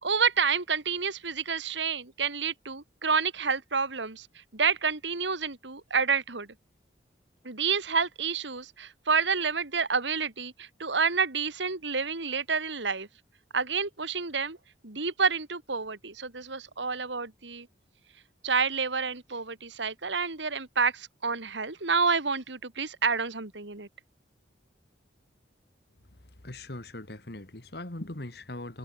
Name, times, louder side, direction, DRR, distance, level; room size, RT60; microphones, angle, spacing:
voice 1, 0.0-4.3 4.5-6.5 7.4-13.1 13.5-14.6 14.8-17.7 18.4-23.9, right 5 dB, 80° right, 2.4 m, -29 dB
voice 2, 26.4-28.8, left 1 dB, 60° left, 2.0 m, -40 dB
head